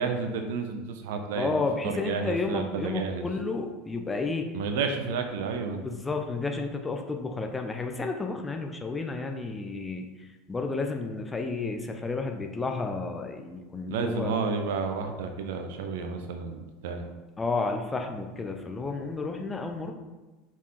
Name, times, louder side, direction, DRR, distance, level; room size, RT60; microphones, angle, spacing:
voice 1, 0.0-3.3 4.5-5.8 13.9-17.1, right 5 dB, 60° right, 6 dB, 0.7 m, -31 dB
voice 2, 1.3-4.5 5.8-14.4 17.4-19.9, left 3 dB, 15° left, 4 dB, 0.7 m, -31 dB
5.7 x 4.5 x 4.3 m, 1.1 s
figure-of-eight pair, 75°, 0 cm